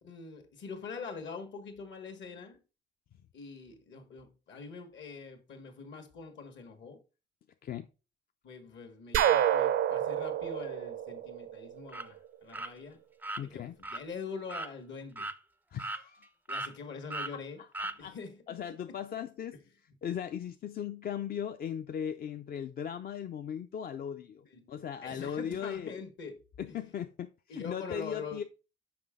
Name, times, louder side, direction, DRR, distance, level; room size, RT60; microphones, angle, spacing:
voice 1, 0.0-2.6 3.3-7.0 8.4-13.0 13.4-15.3 16.5-17.6 18.0-18.4 18.7-19.0 24.5-24.7 25.0-26.4 26.7-26.8 27.5-28.4, left 5 dB, 65° left, 1.5 m, -44 dB
sound 1, 9.1-11.9, right 10 dB, 75° right, 0.5 m, -28 dB
sound 2, 11.9-12.1 12.5-12.7 13.2-13.4 13.8-14.0 14.5-14.7 15.2-15.4 15.8-16.2 16.5-16.7 17.1-17.3 17.7-18.0, right 2 dB, 10° right, 0.3 m, -37 dB
voice 2, 13.4-13.8 15.7-16.3 17.8-18.2 18.5-19.5 20.0-26.0 26.6-27.3 27.5-28.4, left 8 dB, 50° left, 0.4 m, -38 dB
6.0 x 5.1 x 3.6 m
cardioid pair, 90°, 20 cm